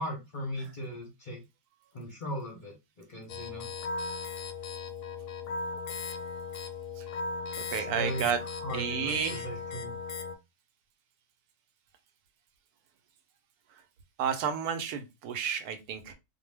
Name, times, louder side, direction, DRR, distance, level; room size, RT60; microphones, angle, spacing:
voice 1, 0.0-1.4 1.9-3.7 7.7-8.3 8.6-10.0, equal, 45° left, -1 dB, 0.7 m, -38 dB
sound 1, 3.3-10.4, left 4 dB, 90° left, 1.1 m, -37 dB
voice 2, 7.7-8.4 8.7-9.5 14.2-16.1, right 7 dB, 80° right, 8 dB, 1.1 m, -31 dB
2.5 x 2.2 x 3.2 m, 0.24 s
omnidirectional pair, 1.6 m